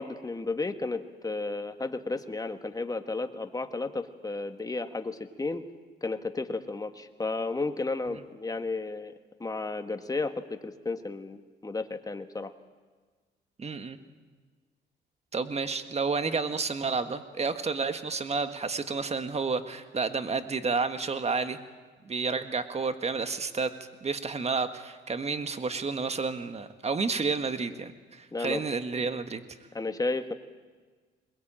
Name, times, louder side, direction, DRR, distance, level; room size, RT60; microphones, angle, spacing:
voice 1, 0.0-5.6 6.0-9.1 9.4-12.5 28.3-28.6 29.7-30.3, left 3 dB, 20° left, 7 dB, 1.7 m, -33 dB
voice 2, 13.6-14.0 15.3-21.6 22.0-23.7 24.0-29.4, right 4 dB, 35° right, 9 dB, 1.7 m, -30 dB
21.5 x 21.5 x 8.9 m, 1.4 s
cardioid pair, 90°, 20 cm